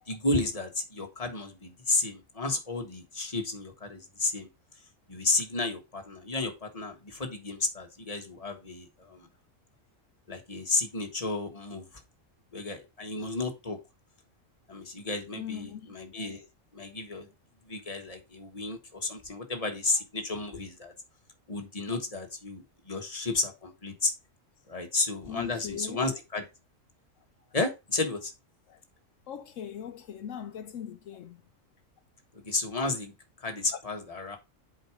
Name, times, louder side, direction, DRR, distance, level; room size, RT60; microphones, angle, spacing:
voice 1, 0.1-4.5 5.1-9.3 10.3-11.9 12.5-13.8 14.7-16.4 16.7-17.3 17.7-20.9 21.5-24.1 24.7-26.4 27.5-28.3 32.3-33.1 33.4-34.4, left 3 dB, 30° left, 1.6 m, -32 dB
voice 2, 15.3-15.9 25.3-26.0 28.7-28.8 29.3-31.4 33.7-33.8, left 8 dB, 75° left, 1.0 m, -40 dB
7.9 x 4.9 x 4.7 m
omnidirectional pair, 1.3 m